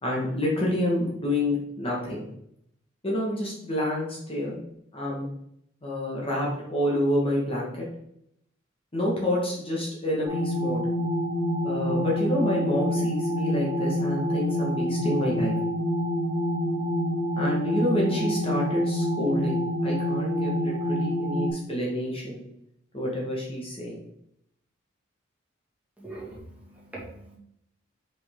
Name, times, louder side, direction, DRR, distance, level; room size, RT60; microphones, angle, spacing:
voice 1, 0.0-2.2 3.0-4.6 4.9-5.2 5.8-7.8 8.9-10.8 11.6-15.6 17.4-22.4 22.9-24.0, left 1 dB, 30° left, -4 dB, 1.5 m, -28 dB
sound 1, 10.2-21.5, equal, 65° left, 2.7 m, -27 dB
voice 2, 26.0-27.4, right 2 dB, 10° right, -6 dB, 2.0 m, -42 dB
6.0 x 5.3 x 3.7 m, 0.75 s
head